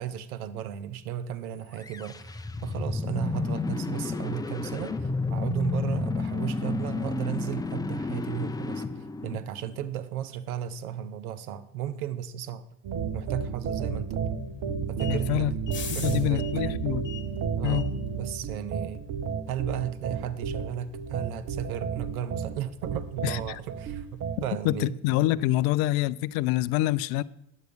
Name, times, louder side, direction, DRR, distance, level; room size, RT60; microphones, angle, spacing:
voice 1, 0.0-8.8 9.2-12.7 13.1-14.4 14.9-15.5 15.9-16.4 17.6-19.0 19.5-25.0, right 10 dB, 80° right, 0.8 m, -35 dB
sound 1, 1.7-9.9, left 3 dB, 10° left, 0.5 m, -31 dB
sound 2, 12.8-24.5, right 6 dB, 45° right, 1.2 m, -32 dB
sound 3, 14.3-24.4, left 6 dB, 25° left, 2.0 m, -45 dB
voice 2, 15.1-15.5 15.9-17.1 17.6-17.8 23.2-23.4 24.6-27.2, left 16 dB, 55° left, 0.5 m, -26 dB
9.5 x 7.9 x 5.1 m
hypercardioid pair, 80°, 43 cm